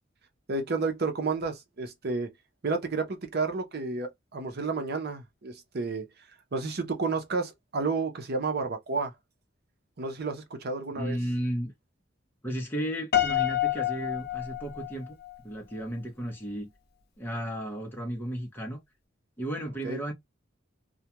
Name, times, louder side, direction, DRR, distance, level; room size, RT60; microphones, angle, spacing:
voice 1, 0.5-2.3 2.6-6.0 6.5-9.1 10.0-11.2 19.8-20.0, right 4 dB, 55° right, 0.7 m, -31 dB
voice 2, 11.0-11.7 12.4-15.1 15.4-16.7 17.2-18.8 19.4-20.1, equal, 10° left, 0.7 m, -34 dB
Piano, 13.1-15.4, left 12 dB, 55° left, 0.5 m, -28 dB
2.4 x 2.2 x 2.9 m
head